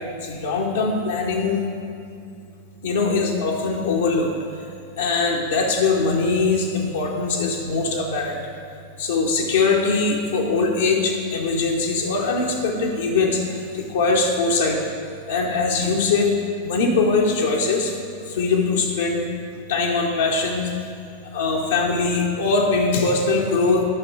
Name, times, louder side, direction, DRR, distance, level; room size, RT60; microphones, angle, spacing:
voice 1, 0.2-1.6 2.8-4.3 5.0-8.4 9.0-14.8 15.3-16.3 16.6-17.9 18.3-19.2 19.7-20.7 21.3-23.8, left 4 dB, 65° left, -2 dB, 1.0 m, -21 dB
11.0 x 5.9 x 4.8 m, 2.4 s
figure-of-eight pair, 90°, 0 cm